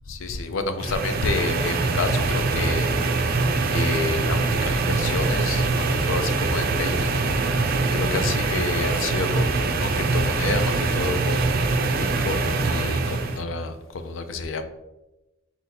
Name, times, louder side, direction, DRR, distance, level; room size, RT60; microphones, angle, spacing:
voice 1, 0.1-2.9 3.7-7.1 7.9-14.6, left 3 dB, 75° left, 8 dB, 0.4 m, -29 dB
sound 1, 0.8-13.4, right 3 dB, 50° right, 0.4 m, -23 dB
4.1 x 4.1 x 2.7 m, 0.99 s
head